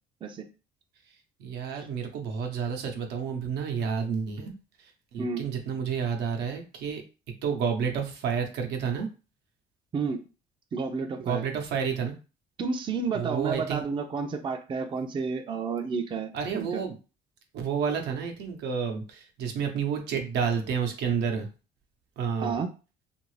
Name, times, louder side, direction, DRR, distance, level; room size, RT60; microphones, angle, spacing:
voice 1, 1.4-4.5 5.1-7.0 7.4-9.1 11.3-12.1 13.1-13.8 16.3-16.9 17.5-21.5 22.2-22.6, right 6 dB, 85° right, 4 dB, 0.8 m, -30 dB
voice 2, 10.7-11.4 12.6-16.8 22.4-22.7, right 5 dB, 30° right, 6 dB, 0.4 m, -31 dB
2.7 x 2.5 x 3.1 m, 0.33 s
cardioid pair, 110°, 17 cm